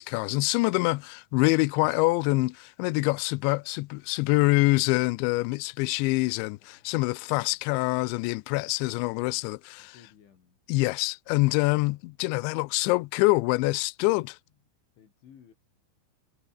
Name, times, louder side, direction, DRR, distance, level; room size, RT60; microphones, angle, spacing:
voice 1, 0.0-9.9 10.7-14.4, left 23 dB, 90° left, 2.6 m, -25 dB
voice 2, 6.6-7.9 9.8-10.6 11.8-12.1 15.0-15.5, left 8 dB, 65° left, 5.9 m, -58 dB
omnidirectional pair, 5.8 m